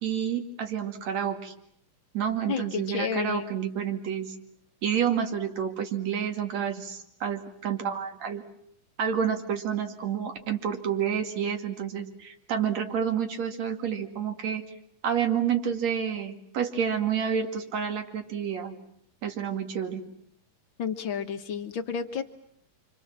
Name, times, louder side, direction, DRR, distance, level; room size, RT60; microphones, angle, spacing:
voice 1, 0.0-1.5 2.1-4.4 4.8-8.4 9.0-14.6 15.0-18.8 19.2-20.0, right 8 dB, 55° right, 6 dB, 3.3 m, -29 dB
voice 2, 2.5-3.5 20.8-22.2, left 7 dB, 55° left, 8 dB, 1.5 m, -31 dB
29.0 x 26.0 x 7.5 m, 0.68 s
omnidirectional pair, 3.9 m